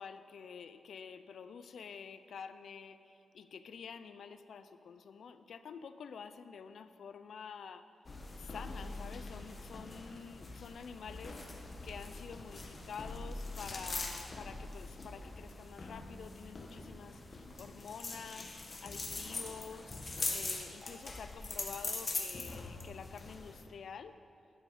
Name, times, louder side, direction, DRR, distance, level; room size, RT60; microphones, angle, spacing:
voice 1, 0.0-7.8 8.3-20.0 20.3-24.2, left 6 dB, 75° left, 11 dB, 0.5 m, -49 dB
sound 1, 8.0-23.6, left 3 dB, 35° left, 1.1 m, -42 dB
11.5 x 8.6 x 5.0 m, 2.5 s
wide cardioid pair, 125°, 0 cm